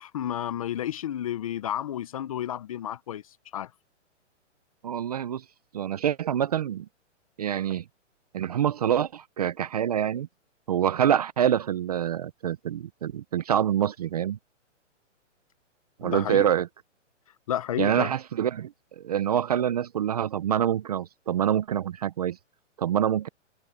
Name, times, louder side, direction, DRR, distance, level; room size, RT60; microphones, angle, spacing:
voice 1, 0.0-3.2 3.5-3.7 16.0-16.5 17.5-18.1, left 11 dB, 30° left, 0.6 m, -31 dB
voice 2, 4.8-5.4 5.7-6.9 7.4-7.8 8.3-10.3 10.7-14.4 16.0-16.7 17.8-22.4 22.8-23.3, right 9 dB, 35° right, 0.5 m, -26 dB
hypercardioid pair, 160°, 37 cm